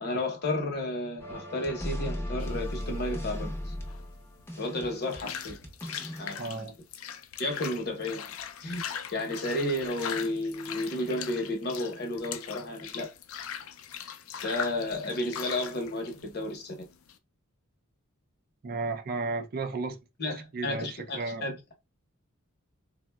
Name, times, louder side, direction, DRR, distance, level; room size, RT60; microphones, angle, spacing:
voice 1, 0.0-3.7 4.6-5.6 6.2-6.7 7.4-8.3 8.6-8.8 9.1-13.1 14.4-16.9 20.2-21.7, left 1 dB, 50° left, 0.8 m, -32 dB
sound 1, 1.2-6.3, left 1 dB, 10° left, 0.6 m, -36 dB
sound 2, 2.4-17.2, left 8 dB, 65° left, 0.4 m, -41 dB
voice 2, 6.4-6.7 18.6-20.0 20.3-21.5, right 3 dB, 45° right, 0.5 m, -34 dB
3.7 x 2.1 x 2.2 m
head